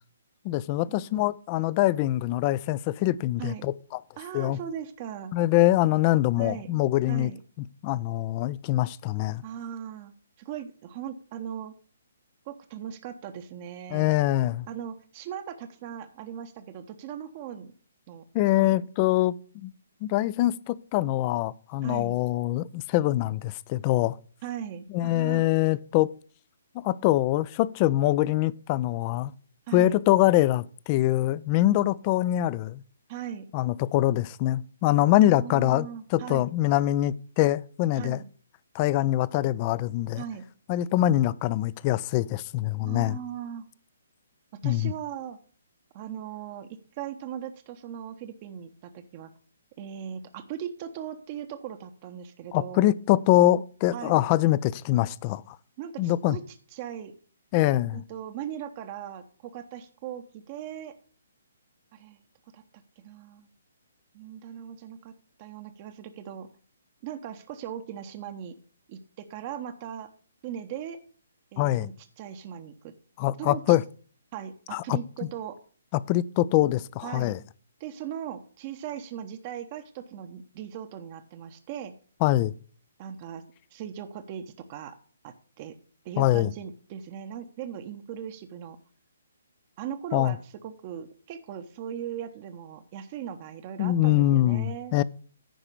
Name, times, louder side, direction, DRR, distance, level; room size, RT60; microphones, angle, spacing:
voice 1, 0.4-3.7 4.3-4.6 5.3-7.3 7.8-9.4 13.9-14.7 18.3-19.7 20.0-24.2 24.9-26.1 26.7-29.3 29.7-32.8 33.5-38.2 38.7-40.2 40.7-43.2 44.6-44.9 52.5-55.6 56.0-56.4 57.5-58.0 71.6-71.9 73.2-73.8 74.7-75.0 75.9-77.4 82.2-82.5 86.2-86.5 90.1-90.4 93.8-95.0, left 15 dB, 30° left, 0.4 m, -24 dB
voice 2, 4.2-5.3 6.4-6.7 7.1-7.4 9.4-11.7 12.5-14.1 14.7-17.7 18.1-18.2 18.5-18.8 21.8-22.2 24.4-25.4 29.7-30.0 33.1-33.5 35.2-36.5 37.9-38.3 40.2-40.5 42.8-43.7 44.5-45.4 45.9-46.7 47.0-49.3 49.8-53.0 53.9-54.3 55.8-56.4 56.7-57.1 57.9-60.9 61.9-62.2 62.5-63.5 64.1-66.5 67.0-68.5 68.9-70.1 70.4-71.0 71.5-72.9 73.4-73.8 74.3-75.6 77.0-77.3 77.8-81.9 83.0-83.4 83.7-85.0 85.2-85.8 86.0-88.8 89.8-94.9, right 9 dB, 35° right, 0.8 m, -39 dB
10.0 x 4.9 x 6.7 m
figure-of-eight pair, 130°, 0 cm